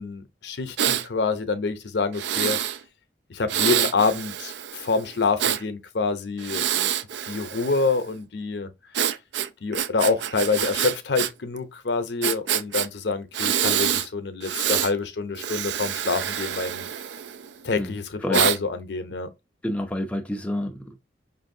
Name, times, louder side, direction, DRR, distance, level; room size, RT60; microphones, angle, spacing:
voice 1, 0.0-2.6 3.3-6.6 7.2-8.7 9.6-16.9 17.6-19.3, left 4 dB, 70° left, 0.6 m, -26 dB
Breathing, 0.8-1.1 2.1-2.8 3.5-5.6 6.4-8.0 8.9-11.3 11.6-11.7 12.2-12.9 13.3-14.1 14.4-14.9 15.4-17.5 18.3-18.6, right 10 dB, 75° right, 0.4 m, -26 dB
voice 2, 17.8-18.4 19.6-21.0, left 1 dB, 5° left, 0.4 m, -29 dB
5.5 x 2.6 x 2.6 m
head